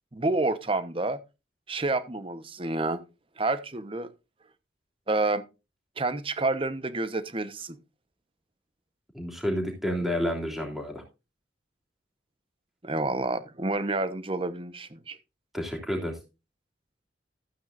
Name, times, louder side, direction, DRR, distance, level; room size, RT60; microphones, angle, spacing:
voice 1, 0.1-1.2 1.7-3.0 3.4-4.1 5.1-5.4 6.0-7.8 12.8-15.2, right 2 dB, 30° right, 0.9 m, -29 dB
voice 2, 9.1-11.0 15.5-16.1, equal, ahead, 3.1 m, -30 dB
14.5 x 9.1 x 2.5 m
head